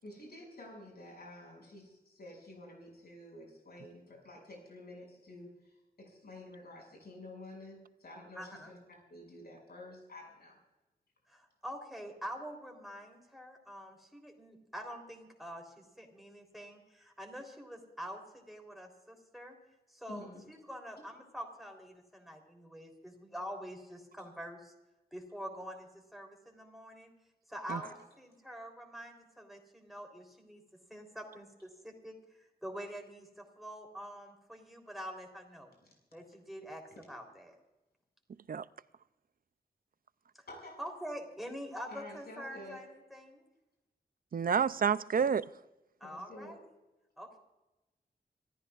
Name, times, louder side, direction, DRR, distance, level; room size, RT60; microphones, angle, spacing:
voice 1, 0.0-8.8 9.1-10.6 20.1-20.4 27.7-27.9 40.5-40.8 41.9-42.8 46.0-46.6, left 1 dB, 75° left, 6.4 m, -50 dB
voice 2, 8.4-8.7 11.3-19.6 19.9-24.7 25.1-27.1 27.5-30.6 30.9-35.7 36.1-36.8 37.1-37.6 40.8-43.4 46.0-46.6 47.2-47.4, equal, ahead, 3.6 m, -46 dB
voice 3, 44.3-45.5, right 7 dB, 60° right, 0.5 m, -29 dB
27.0 x 14.5 x 2.5 m
wide cardioid pair, 85°, 17 cm